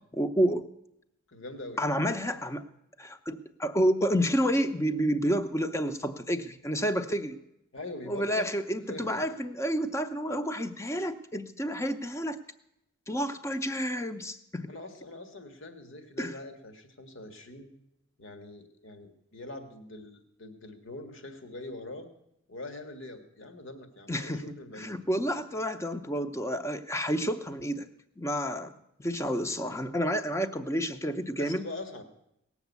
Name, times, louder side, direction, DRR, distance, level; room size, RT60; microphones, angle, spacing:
voice 1, 0.1-0.7 1.8-2.6 3.0-7.4 8.1-12.4 13.1-14.7 16.2-16.3 24.1-24.4 24.8-27.9 28.2-28.7 29.0-31.6, equal, 15° left, 10 dB, 0.7 m, -29 dB
voice 2, 1.3-1.8 7.7-8.5 8.9-9.2 14.7-17.7 18.2-22.1 22.5-25.5 31.4-32.0, left 2 dB, 65° left, 7 dB, 1.7 m, -43 dB
18.0 x 7.2 x 8.2 m, 0.80 s
head